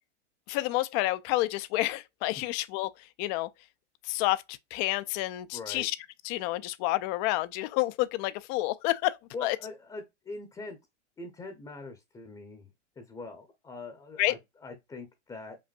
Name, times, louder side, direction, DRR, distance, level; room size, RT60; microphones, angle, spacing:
voice 1, 0.5-2.9 3.2-3.5 4.1-6.0 6.2-9.6 14.2-14.3, left 18 dB, 40° left, 0.4 m, -29 dB
voice 2, 5.5-5.9 9.3-10.8 11.2-12.7 13.0-15.6, left 3 dB, 10° left, 0.7 m, -42 dB
5.3 x 2.5 x 2.4 m
hypercardioid pair, 115°, 35 cm